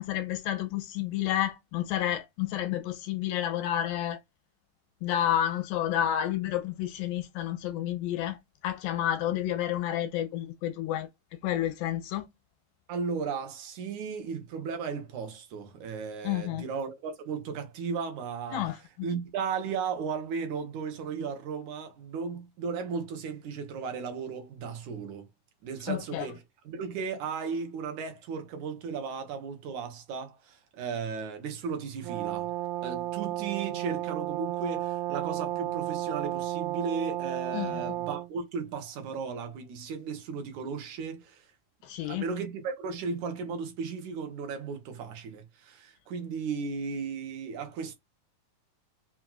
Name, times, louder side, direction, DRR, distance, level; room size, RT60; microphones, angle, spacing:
voice 1, 0.0-4.2 5.0-8.4 8.6-11.1 11.4-12.3 16.2-16.6 18.5-18.8 25.9-26.3 37.5-37.8 41.9-42.2, left 12 dB, 85° left, 2.3 m, -30 dB
voice 2, 12.9-18.7 19.0-25.3 25.6-32.5 32.8-41.5 42.1-47.9, right 5 dB, 65° right, 2.1 m, -35 dB
Brass instrument, 32.0-38.3, right 15 dB, 80° right, 2.4 m, -33 dB
5.9 x 2.6 x 2.3 m
omnidirectional pair, 4.2 m